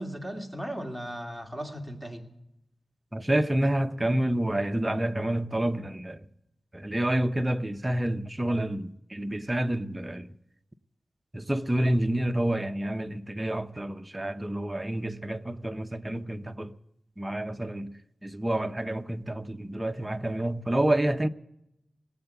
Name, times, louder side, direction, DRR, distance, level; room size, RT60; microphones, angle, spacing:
voice 1, 0.0-2.2, equal, 5° left, 2.4 m, -36 dB
voice 2, 3.1-6.3 6.7-10.3 11.3-16.7 17.2-21.3, right 1 dB, 20° right, 0.7 m, -28 dB
19.0 x 8.1 x 8.1 m
wide cardioid pair, 65°, 0 cm